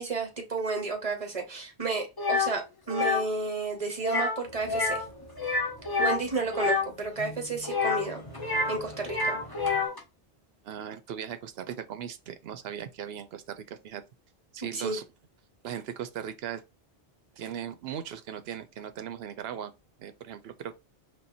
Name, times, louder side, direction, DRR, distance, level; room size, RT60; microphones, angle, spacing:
voice 1, 0.0-5.0 6.0-8.2 8.7-9.4 14.7-15.0, right 3 dB, 35° right, 1.2 m, -32 dB
sound 1, 2.2-2.5 2.9-3.2 4.0-4.4 4.7-5.1 5.4-6.9 7.6-8.8 9.0-10.0, left 4 dB, 25° left, 0.9 m, -28 dB
sound 2, 4.4-9.9, equal, 45° left, 1.7 m, -46 dB
voice 2, 10.6-14.0 14.5-15.0 15.6-16.6 17.4-19.7 20.0-20.8, right 9 dB, 75° right, 0.8 m, -38 dB
4.5 x 3.3 x 2.6 m
omnidirectional pair, 1.1 m